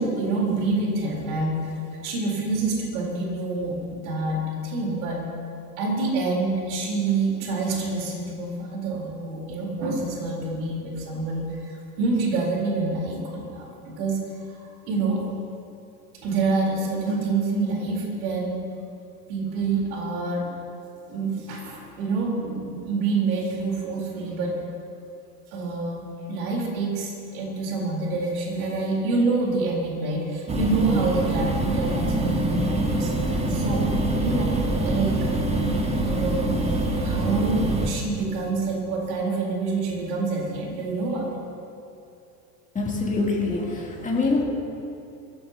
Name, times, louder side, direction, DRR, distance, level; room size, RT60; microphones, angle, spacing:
voice 1, 0.0-1.6 2.0-5.2 5.8-14.2 14.9-15.2 16.2-18.6 19.3-20.5 21.1-24.5 25.5-26.0 26.3-33.1 33.5-33.8 34.2-34.6 34.8-35.1 36.0-36.6 37.0-41.3, right 3 dB, 60° right, -2 dB, 4.2 m, -27 dB
sound 1, 30.5-37.9, right 1 dB, 10° right, 1.7 m, -24 dB
voice 2, 42.7-44.4, left 3 dB, 15° left, -2 dB, 3.0 m, -25 dB
23.0 x 17.0 x 2.9 m, 2.7 s
figure-of-eight pair, 75°, 49 cm